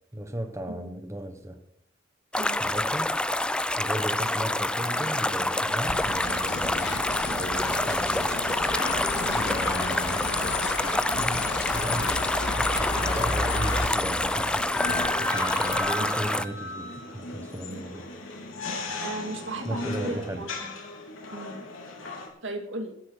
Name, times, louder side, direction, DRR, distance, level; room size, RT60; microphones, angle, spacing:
voice 1, 0.1-1.6 2.6-3.2 3.8-8.3 9.3-10.2 11.2-18.0 18.4-18.5 19.6-20.5, right 1 dB, 15° right, 6 dB, 1.1 m, -36 dB
voice 2, 0.7-1.0 2.4-2.7 9.1-9.4 16.0-16.2 17.7-17.8 19.0-20.7 21.3-21.6 22.4-23.0, right 2 dB, 65° right, 5 dB, 2.4 m, -37 dB
sound 1, 2.3-16.5, left 1 dB, 5° left, 0.5 m, -27 dB
sound 2, 3.9-22.3, left 2 dB, 85° left, 3.9 m, -38 dB
sound 3, 5.8-15.8, left 3 dB, 60° left, 1.8 m, -32 dB
13.0 x 10.5 x 6.4 m, 0.72 s
head